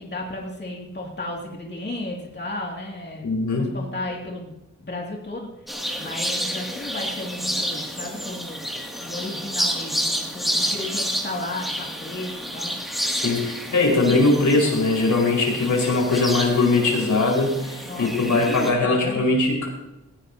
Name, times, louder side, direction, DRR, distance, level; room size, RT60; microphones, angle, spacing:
voice 1, 0.0-12.7 13.7-13.8 17.9-19.3, left 2 dB, 35° left, -1 dB, 2.4 m, -34 dB
voice 2, 3.2-3.7 13.1-19.7, left 3 dB, 85° left, -1 dB, 4.9 m, -21 dB
sound 1, 5.7-18.7, equal, ahead, 2.4 m, -30 dB
18.5 x 16.5 x 2.8 m, 0.94 s
wide cardioid pair, 130°, 30 cm